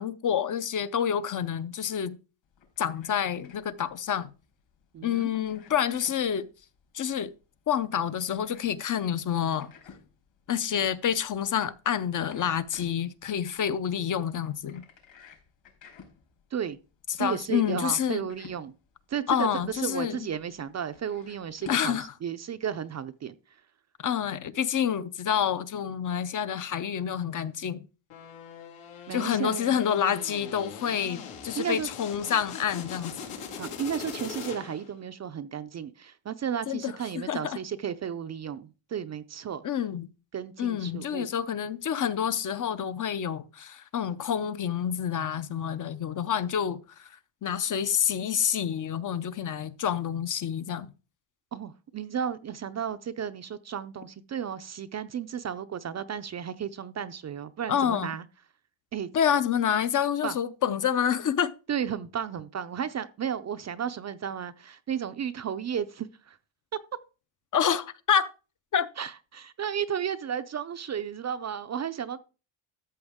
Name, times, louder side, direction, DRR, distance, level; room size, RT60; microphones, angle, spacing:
voice 1, 0.0-2.2 2.8-4.3 5.0-6.5 6.9-7.3 7.7-9.7 10.5-14.8 17.2-18.3 19.3-20.3 21.7-22.1 24.0-27.9 29.1-33.2 36.7-37.6 39.6-40.1 40.6-47.1 47.4-50.9 57.7-58.1 59.1-61.5 67.5-68.3 68.7-68.9, left 8 dB, 40° left, 0.6 m, -28 dB
sound 1, 2.4-22.0, left 6 dB, 65° left, 4.5 m, -54 dB
voice 2, 4.9-5.3 16.5-16.8 17.2-18.7 19.1-23.3 29.1-29.7 31.6-31.9 33.6-39.6 40.3-41.3 51.5-58.2 58.9-59.1 60.2-60.4 61.7-66.4 69.0-72.2, right 8 dB, 35° right, 0.4 m, -33 dB
sound 2, 28.1-35.0, left 7 dB, 90° left, 2.8 m, -41 dB
13.5 x 7.1 x 3.5 m
cardioid pair, 150°, 49 cm